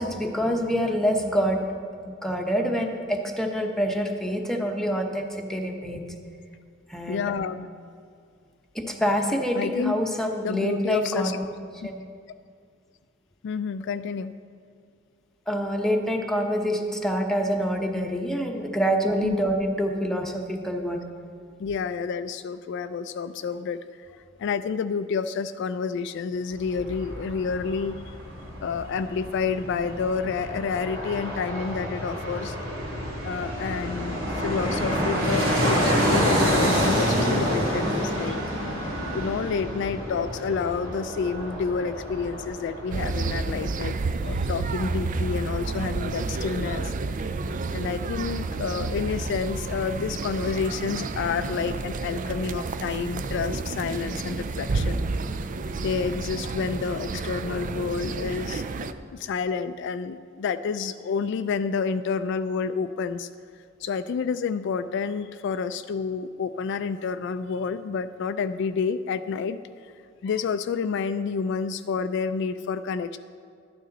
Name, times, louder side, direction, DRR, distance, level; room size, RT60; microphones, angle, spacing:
voice 1, 0.0-1.6 2.2-6.1 6.9-7.2 8.7-11.5 11.8-12.0 15.5-21.1, equal, ahead, 1 dB, 0.9 m, -26 dB
voice 2, 7.1-7.7 9.5-10.0 10.4-11.4 13.4-14.3 19.2-19.4 21.6-28.2 28.6-32.6 33.2-38.4 39.1-44.0 44.2-47.3 47.7-55.0 55.8-58.6 59.1-63.3 63.8-69.6 70.2-73.2, left 5 dB, 60° left, 11 dB, 0.3 m, -29 dB
Fixed-wing aircraft airplane, 26.5-43.4 43.7-43.8, equal, 90° right, 2.8 m, -28 dB
sound 1, 42.9-58.9, right 3 dB, 40° right, 0.4 m, -30 dB
12.5 x 9.2 x 4.0 m, 2.2 s
head